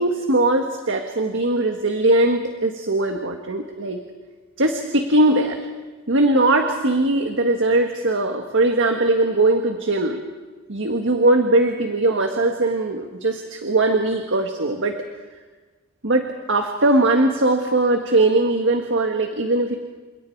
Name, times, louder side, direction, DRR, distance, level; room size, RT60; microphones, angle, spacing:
voice 1, 0.0-4.0 4.6-5.6 6.1-10.2 10.7-15.0 16.0-19.8, right 2 dB, 60° right, 4 dB, 1.8 m, -20 dB
29.5 x 27.5 x 4.8 m, 1.3 s
head